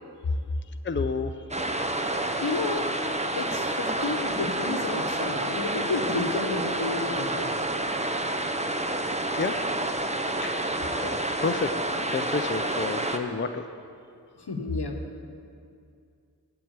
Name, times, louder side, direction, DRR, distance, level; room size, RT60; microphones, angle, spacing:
voice 1, 0.8-1.4 9.3-9.5 10.3-10.7 11.0-13.7, left 4 dB, 30° left, 8 dB, 0.5 m, -30 dB
sound 1, 1.5-13.2, right 1 dB, 15° right, 0.7 m, -29 dB
voice 2, 2.4-2.9 3.4-7.6 14.4-15.0, left 3 dB, 80° left, 4 dB, 1.1 m, -31 dB
8.1 x 7.6 x 8.9 m, 2.4 s
wide cardioid pair, 50°, 39 cm